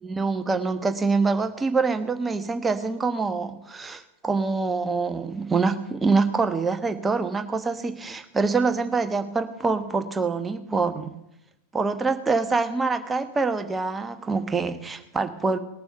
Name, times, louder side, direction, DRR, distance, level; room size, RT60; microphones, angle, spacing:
voice 1, 0.0-11.2 11.7-15.6, right 4 dB, 15° right, 8 dB, 1.1 m, -25 dB
19.5 x 6.9 x 6.8 m, 0.86 s
figure-of-eight pair, 90°, 0 cm